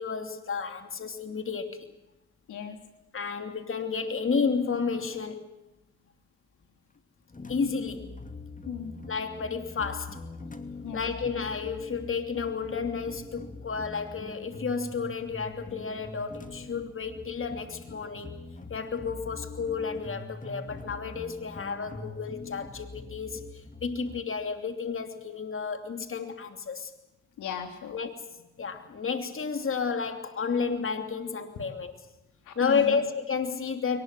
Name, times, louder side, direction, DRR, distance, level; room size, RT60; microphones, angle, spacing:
voice 1, 0.0-1.9 3.1-5.4 7.5-8.1 9.1-10.2 10.9-18.3 18.7-23.4 23.8-26.9 27.9-28.1 28.6-31.9 32.6-34.0, left 5 dB, 45° left, 7 dB, 2.9 m, -31 dB
voice 2, 2.5-2.8 8.6-9.0 10.8-11.0 27.4-28.0 32.5-33.0, left 8 dB, 85° left, 6 dB, 3.3 m, -37 dB
sound 1, 7.3-24.2, left 2 dB, 25° left, 2.7 m, -43 dB
23.0 x 20.0 x 7.6 m, 0.95 s
cardioid pair, 65°, 30 cm